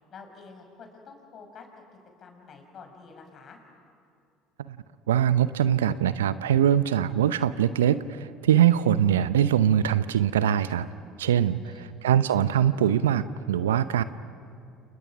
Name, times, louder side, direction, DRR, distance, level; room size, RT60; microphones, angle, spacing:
voice 1, 0.1-1.8 2.2-3.6 11.4-11.9, left 5 dB, 45° left, 4 dB, 5.5 m, -48 dB
voice 2, 5.1-10.9 11.2-14.0, right 10 dB, 80° right, 15 dB, 0.7 m, -23 dB
29.5 x 29.0 x 6.2 m, 2.4 s
hypercardioid pair, 65°, 0 cm